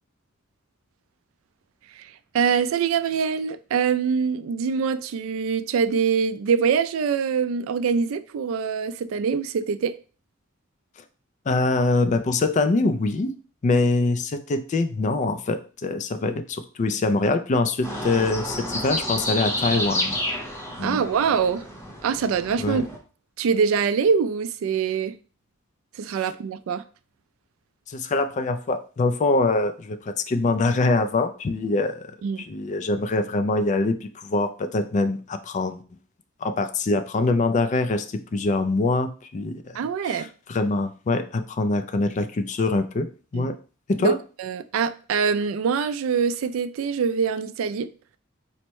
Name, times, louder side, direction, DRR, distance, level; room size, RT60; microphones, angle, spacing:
voice 1, 1.9-10.0 20.8-21.6 22.0-22.9 23.4-25.2 25.9-26.8 32.2-32.4 39.7-40.3 43.3-43.5 44.0-47.9, right 6 dB, 75° right, 0.3 m, -24 dB
voice 2, 11.5-13.3 13.6-20.2 20.8-21.0 22.6-22.8 27.9-35.8 36.4-39.6 40.0-43.5 43.9-44.2, left 3 dB, 35° left, 0.3 m, -24 dB
sound 1, 17.8-23.0, left 1 dB, 10° left, 0.8 m, -30 dB
4.1 x 2.1 x 4.5 m
head